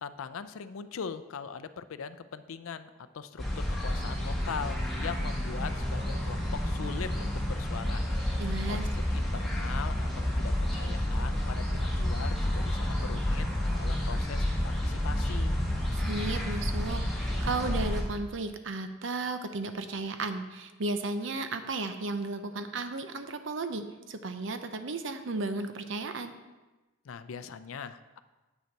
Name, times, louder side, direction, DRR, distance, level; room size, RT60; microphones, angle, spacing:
voice 1, 0.0-10.1 10.4-13.5 13.7-15.6 27.0-28.2, left 6 dB, 85° left, 13 dB, 0.4 m, -41 dB
sound 1, 3.4-18.0, left 1 dB, ahead, 1.5 m, -30 dB
sound 2, 3.9-8.4, right 2 dB, 30° right, 2.1 m, -47 dB
voice 2, 8.4-8.8 15.9-26.3, right 3 dB, 65° right, 8 dB, 0.7 m, -34 dB
8.3 x 6.6 x 4.6 m, 1.2 s
head